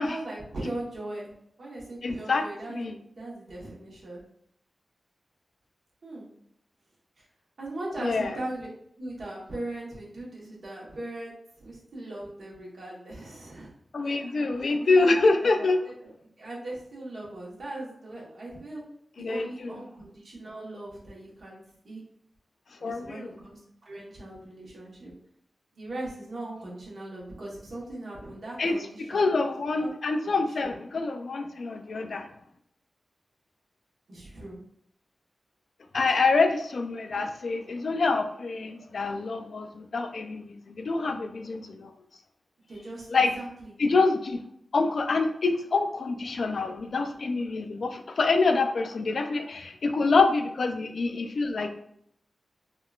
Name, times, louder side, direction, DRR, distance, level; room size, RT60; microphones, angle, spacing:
voice 1, 0.0-1.3 1.6-2.8 3.1-4.3 6.0-6.3 7.2-7.3 7.6-8.7 9.0-11.3 11.6-13.7 14.0-15.9 16.4-18.8 19.2-22.0 22.8-23.6 23.8-25.1 25.7-29.2 29.8-29.9 30.2-30.3 30.6-30.7 34.1-34.6 42.7-43.7, right 1 dB, 65° right, -5 dB, 1.1 m, -39 dB
voice 2, 2.0-2.4 2.7-2.9 8.0-8.3 13.9-15.8 19.2-19.7 22.8-23.3 28.6-28.7 29.1-32.3 35.9-41.9 43.1-43.3 43.8-44.4 44.7-51.7, left 3 dB, 70° left, 6 dB, 0.3 m, -26 dB
3.5 x 2.3 x 2.4 m, 0.69 s
wide cardioid pair, 105°, 0 cm